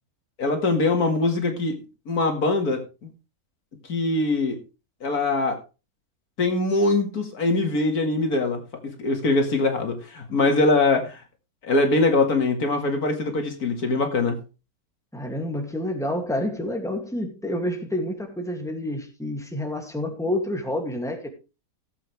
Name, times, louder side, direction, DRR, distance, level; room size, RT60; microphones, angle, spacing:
voice 1, 0.4-1.8 2.1-3.1 3.9-4.6 5.0-5.6 6.4-11.2 11.6-14.4, left 2 dB, 75° left, 2.5 m, -22 dB
voice 2, 15.1-21.3, left 1 dB, ahead, 2.4 m, -28 dB
17.0 x 8.0 x 3.4 m
omnidirectional pair, 1.6 m